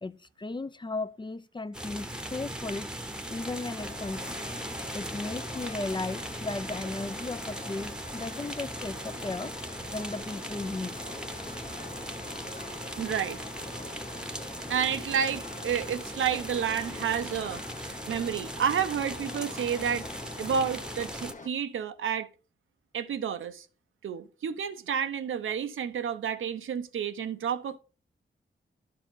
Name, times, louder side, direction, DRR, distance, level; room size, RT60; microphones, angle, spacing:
voice 1, 0.0-2.9 3.3-4.4 4.9-9.5 9.9-11.0, left 3 dB, 25° left, 0.5 m, -36 dB
sound 1, 1.7-21.3, right 1 dB, 5° right, 1.0 m, -39 dB
sound 2, 3.8-21.5, left 3 dB, 40° left, 1.1 m, -45 dB
voice 2, 13.0-13.4 14.7-20.1 20.4-22.3 22.9-23.7 24.0-27.8, right 7 dB, 90° right, 0.7 m, -30 dB
11.5 x 4.7 x 3.9 m
cardioid pair, 60°, 20 cm